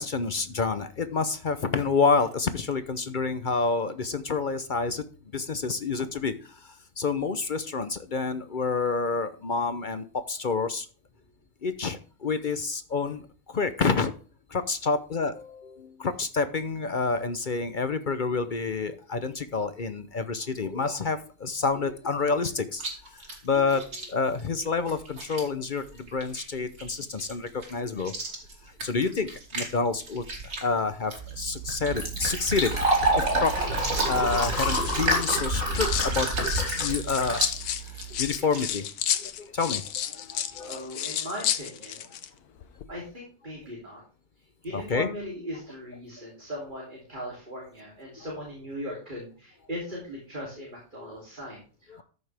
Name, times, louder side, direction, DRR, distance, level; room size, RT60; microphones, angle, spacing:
voice 1, 0.0-5.0 5.3-10.9 11.6-13.2 13.5-14.1 14.5-28.1 28.8-30.2 30.6-32.7 33.1-36.3 36.8-37.5 38.2-38.9 39.1-40.9 44.7-45.1 48.2-48.3 51.0-51.1 51.9-52.0, left 4 dB, 45° left, 11 dB, 0.6 m, -28 dB
Chewing mastication, 22.7-38.7, right 2 dB, 80° right, 3.4 m, -41 dB
Fill (with liquid), 31.2-38.3, right 1 dB, 60° right, 4.7 m, -27 dB
sound 1, 32.7-33.2 34.0-36.1 36.4-42.3 42.6-42.8, left 10 dB, 85° left, 1.3 m, -32 dB
voice 2, 40.6-42.0 42.9-44.0 44.6-52.0, equal, 30° right, -3 dB, 3.3 m, -39 dB
13.5 x 6.6 x 3.4 m, 0.39 s
omnidirectional pair, 1.6 m